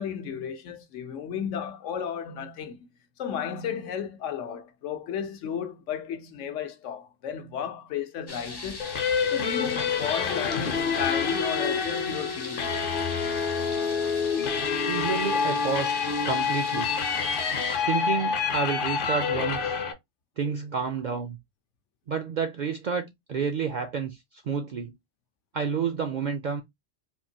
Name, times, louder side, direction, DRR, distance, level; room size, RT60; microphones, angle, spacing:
voice 1, 0.0-2.9 3.2-8.9 9.3-12.8, left 8 dB, 85° left, 1.0 m, -33 dB
sound 1, 8.3-17.8, left 3 dB, 30° left, 0.5 m, -40 dB
sound 2, 8.8-19.9, left 6 dB, 55° left, 0.7 m, -27 dB
voice 2, 14.9-17.0 17.9-19.8 20.4-21.4 22.1-25.0 25.5-26.6, right 5 dB, 65° right, 0.4 m, -30 dB
3.6 x 2.5 x 2.7 m
omnidirectional pair, 1.2 m